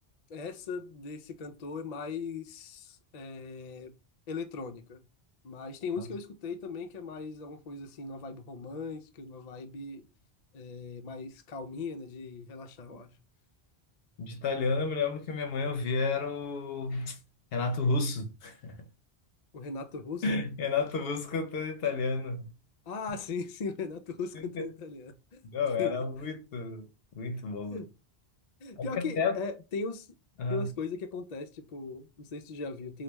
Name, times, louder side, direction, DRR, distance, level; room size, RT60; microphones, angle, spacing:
voice 1, 0.3-3.9 4.3-5.0 5.4-10.1 10.5-13.2 19.5-20.4 22.9-25.4 25.8-26.0 27.7-27.9 28.6-30.1 30.5-33.0, left 4 dB, 50° left, 0.5 m, -38 dB
voice 2, 14.2-17.2 17.5-18.9 20.2-22.5 24.3-24.7 25.4-26.9 27.2-27.8 28.8-28.9 29.2-29.4 30.4-30.7, left 4 dB, 70° left, 0.8 m, -31 dB
3.0 x 2.3 x 3.3 m
omnidirectional pair, 1.1 m